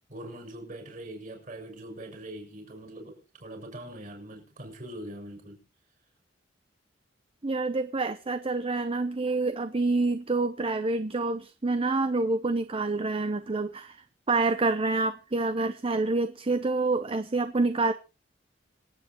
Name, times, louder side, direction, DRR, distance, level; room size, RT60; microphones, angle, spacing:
voice 1, 0.1-5.6, right 1 dB, 45° right, 6.7 m, -42 dB
voice 2, 7.4-17.9, right 3 dB, 30° right, 0.7 m, -27 dB
26.0 x 8.8 x 3.0 m
head